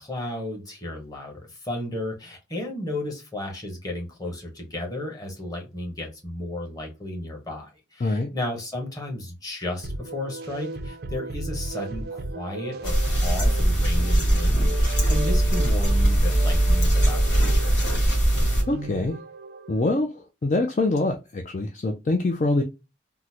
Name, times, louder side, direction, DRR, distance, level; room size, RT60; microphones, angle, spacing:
voice 1, 0.0-18.1, left 1 dB, 20° left, 1.0 m, -34 dB
sound 1, 9.8-19.9, right 2 dB, 55° right, 0.4 m, -35 dB
sound 2, 12.8-18.6, right 1 dB, 65° left, 1.9 m, -21 dB
voice 2, 18.7-19.2 19.7-22.6, left 2 dB, 40° left, 0.4 m, -24 dB
3.7 x 2.0 x 2.8 m
head